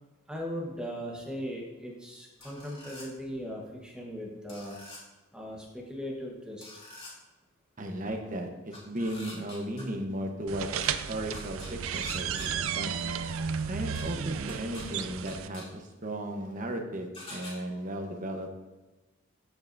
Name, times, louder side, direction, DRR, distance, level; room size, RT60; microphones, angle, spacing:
voice 1, 0.3-4.8 5.3-6.7, equal, 5° right, -2 dB, 1.1 m, -38 dB
sound 1, 2.4-3.1 4.5-5.0 6.6-7.1 8.7-9.8 10.8-10.9 11.3-12.5 14.0-14.1 14.5-14.8 15.3-15.6 17.1-17.5, left 2 dB, 30° left, 2.8 m, -45 dB
voice 2, 7.8-13.0 13.7-18.6, right 1 dB, 40° right, 3 dB, 1.0 m, -36 dB
sound 2, 10.5-15.5, right 7 dB, 70° right, 0.4 m, -33 dB
14.0 x 5.6 x 2.6 m, 1.1 s
head